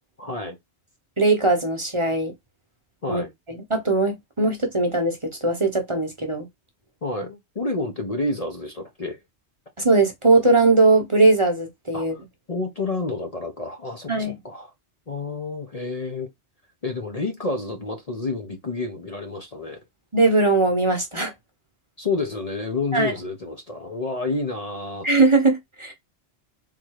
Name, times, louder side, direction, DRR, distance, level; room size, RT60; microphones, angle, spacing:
voice 1, 0.2-0.6 3.0-3.3 7.0-9.2 11.9-12.2 12.5-14.7 15.1-16.3 16.8-19.8 22.0-25.1, left 3 dB, 40° left, 0.8 m, -29 dB
voice 2, 1.2-2.3 3.1-3.2 3.5-6.5 9.8-12.1 14.1-14.4 20.1-21.3 22.9-23.1 25.0-25.9, right 3 dB, 30° right, 1.1 m, -20 dB
3.8 x 2.7 x 4.7 m
omnidirectional pair, 1.2 m